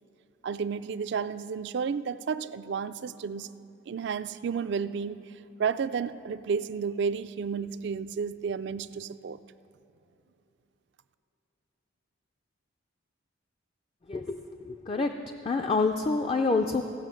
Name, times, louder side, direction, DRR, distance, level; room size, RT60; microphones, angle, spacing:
voice 1, 0.4-3.5 3.9-5.3 5.6-9.4, right 6 dB, 55° right, 14 dB, 0.3 m, -32 dB
voice 2, 14.1-15.1 15.4-16.8, left 3 dB, 30° left, 5 dB, 0.4 m, -27 dB
16.5 x 5.6 x 7.6 m, 2.8 s
head